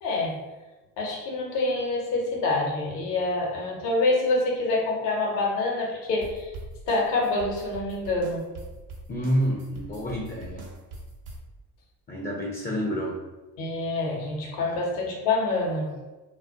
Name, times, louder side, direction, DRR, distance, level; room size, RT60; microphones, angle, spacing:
voice 1, 0.0-0.3 1.0-6.5 6.9-8.4 13.6-15.9, left 2 dB, 75° left, -2 dB, 0.8 m, -26 dB
sound 1, 6.2-11.4, right 2 dB, 85° right, 0.6 m, -42 dB
voice 2, 9.1-10.7 12.1-13.2, equal, 20° left, 0 dB, 0.4 m, -28 dB
2.3 x 2.1 x 2.6 m, 1.2 s
hypercardioid pair, 50°, 45 cm